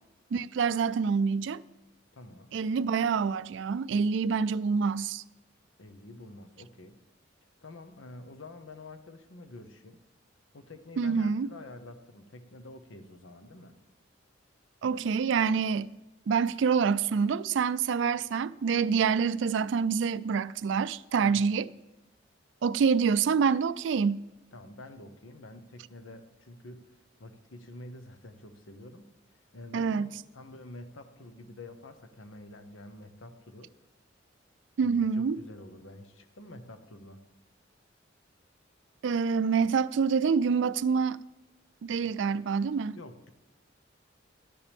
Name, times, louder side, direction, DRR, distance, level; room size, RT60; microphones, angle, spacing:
voice 1, 0.3-1.6 2.5-5.2 11.0-11.5 14.8-15.9 16.3-21.7 22.6-24.3 29.7-30.1 34.8-35.4 39.0-41.2 41.8-43.0, right 6 dB, 70° right, 0.3 m, -26 dB
voice 2, 2.1-2.6 5.8-7.0 7.6-10.0 10.5-13.8 21.2-21.5 24.5-26.9 27.2-29.0 29.5-33.7 34.8-37.2 42.0-42.1 42.9-43.3, left 2 dB, 90° left, 0.9 m, -48 dB
13.5 x 10.0 x 3.5 m
head